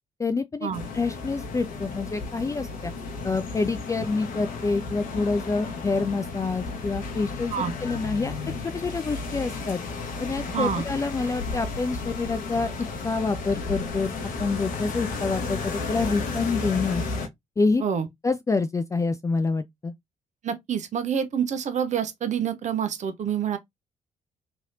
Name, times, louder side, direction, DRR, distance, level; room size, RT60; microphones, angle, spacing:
voice 1, 0.2-0.7 0.9-2.9 3.2-8.3 8.6-9.8 10.2-12.7 13.0-14.1 14.4-17.0 17.6-17.8 18.2-19.9, left 4 dB, 20° left, 0.4 m, -27 dB
sound 1, 0.7-17.3, left 4 dB, 60° left, 0.9 m, -33 dB
voice 2, 10.5-10.8 17.8-18.1 20.4-23.6, right 8 dB, 45° right, 0.7 m, -27 dB
3.1 x 2.7 x 2.5 m
hypercardioid pair, 45°, 16 cm